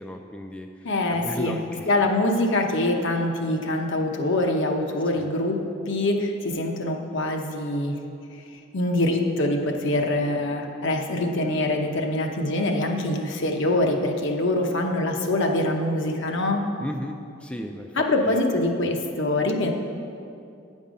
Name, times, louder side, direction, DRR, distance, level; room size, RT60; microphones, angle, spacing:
voice 1, 0.0-1.9 5.2-5.3 16.8-18.4, equal, 5° left, 3 dB, 0.3 m, -35 dB
voice 2, 0.8-1.6 1.9-8.0 8.7-16.6 18.0-19.7, left 1 dB, 65° left, 3 dB, 0.8 m, -24 dB
9.0 x 5.4 x 5.1 m, 2.5 s
head